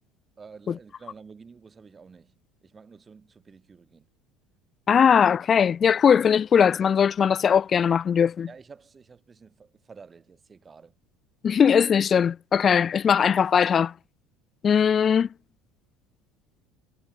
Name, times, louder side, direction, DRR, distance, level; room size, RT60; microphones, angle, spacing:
voice 1, 0.4-4.1 8.5-10.9, right 5 dB, 25° right, 6.9 m, -49 dB
voice 2, 4.9-8.5 11.4-13.9 14.6-15.3, left 7 dB, 35° left, 1.1 m, -20 dB
figure-of-eight pair, 65°, 0 cm